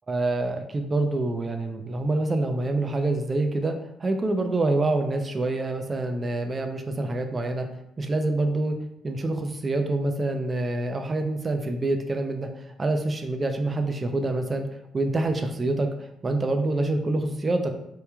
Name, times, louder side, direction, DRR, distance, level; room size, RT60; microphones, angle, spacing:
voice 1, 0.1-7.7 8.0-8.8 9.0-14.7 14.9-17.7, right 2 dB, 30° right, 5 dB, 0.3 m, -26 dB
3.0 x 2.2 x 2.2 m, 0.79 s
cardioid pair, 90°, 0 cm